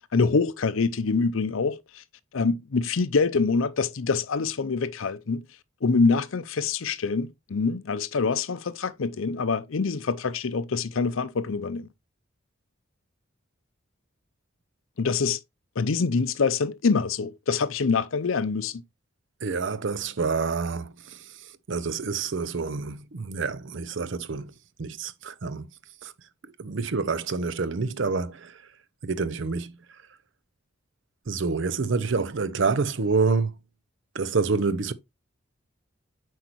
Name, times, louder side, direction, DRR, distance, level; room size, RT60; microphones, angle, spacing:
voice 1, 0.1-2.0 2.3-5.4 5.8-11.9 15.0-15.4 15.8-18.8, left 4 dB, 75° left, 0.6 m, -25 dB
voice 2, 19.4-24.5 24.8-25.7 26.0-26.1 26.6-28.6 29.0-30.0 31.3-33.5 34.1-34.9, right 4 dB, 60° right, 0.6 m, -28 dB
7.9 x 4.7 x 3.0 m
head